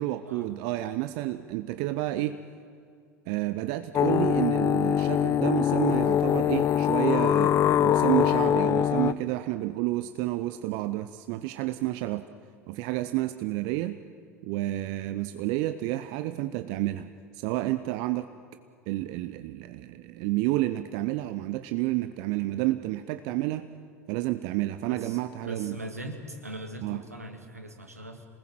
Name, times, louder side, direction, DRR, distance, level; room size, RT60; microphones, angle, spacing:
voice 1, 0.0-2.4 3.3-12.2 12.7-14.0 14.4-17.1 17.3-18.3 18.9-23.7 24.1-25.8 26.8-27.0, right 16 dB, 55° right, 11 dB, 0.7 m, -30 dB
sound 1, 3.9-9.1, left 10 dB, 40° left, 0.6 m, -23 dB
voice 2, 24.9-28.3, right 1 dB, 90° right, 5 dB, 2.1 m, -40 dB
27.0 x 19.5 x 7.7 m, 2.4 s
figure-of-eight pair, 70°, 8 cm